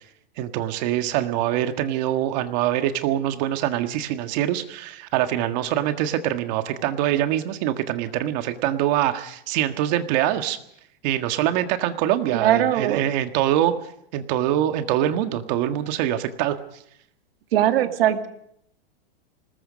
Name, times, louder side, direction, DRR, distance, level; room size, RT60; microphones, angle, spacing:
voice 1, 0.4-10.6 11.0-13.7 14.1-16.6, right 12 dB, 45° right, 8 dB, 1.8 m, -24 dB
voice 2, 12.3-13.0 17.5-18.3, right 11 dB, 70° right, 7 dB, 2.3 m, -20 dB
26.0 x 20.0 x 5.2 m, 0.72 s
supercardioid pair, 145°, 30 cm